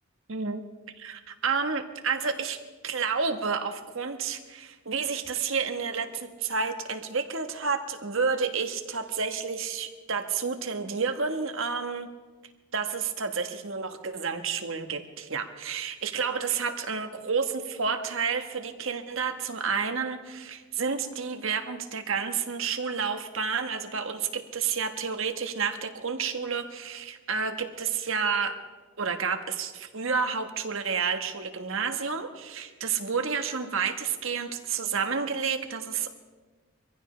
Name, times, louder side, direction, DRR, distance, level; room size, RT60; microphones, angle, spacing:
voice 1, 0.3-0.6 1.0-2.6 2.8-12.1 12.7-28.6 29.0-36.1, right 5 dB, 70° right, 6 dB, 1.4 m, -30 dB
25.5 x 15.5 x 3.3 m, 1.3 s
head